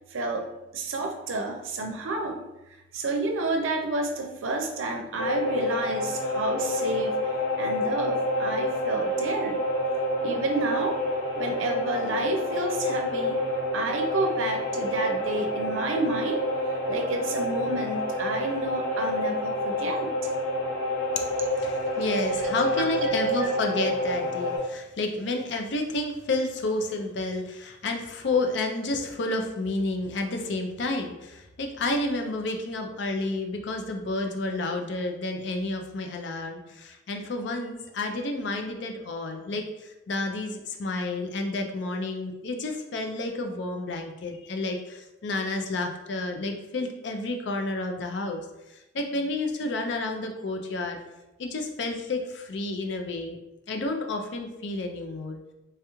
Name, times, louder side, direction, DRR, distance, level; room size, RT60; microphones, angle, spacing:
voice 1, 0.1-7.2 7.6-9.6 10.2-11.0 11.4-13.5 13.7-16.4 16.7-20.1 22.8-23.1 23.4-23.5, right 2 dB, 85° right, 3 dB, 0.5 m, -30 dB
sound 1, 5.2-24.6, left 1 dB, 90° left, 0.7 m, -28 dB
voice 2, 21.6-48.4 48.9-51.0 51.4-53.4 53.7-55.4, left 2 dB, 65° left, 4 dB, 0.4 m, -30 dB
3.2 x 2.3 x 2.9 m, 0.98 s
head